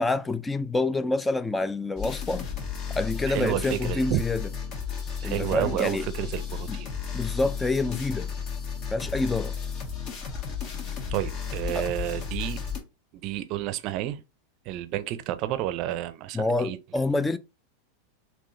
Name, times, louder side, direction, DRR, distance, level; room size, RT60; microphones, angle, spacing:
voice 1, 0.0-2.5 2.9-4.5 5.2-6.1 6.7-6.8 7.1-8.3 8.9-9.5 11.7-11.9 16.3-17.4, left 3 dB, 10° left, 0.3 m, -27 dB
sound 1, 2.0-12.8, left 6 dB, 45° left, 1.1 m, -33 dB
voice 2, 3.3-4.2 5.2-6.9 11.1-12.6 13.1-14.2 14.7-16.8, right 13 dB, 50° right, 0.5 m, -30 dB
3.7 x 2.8 x 2.6 m
hypercardioid pair, 100°, 0 cm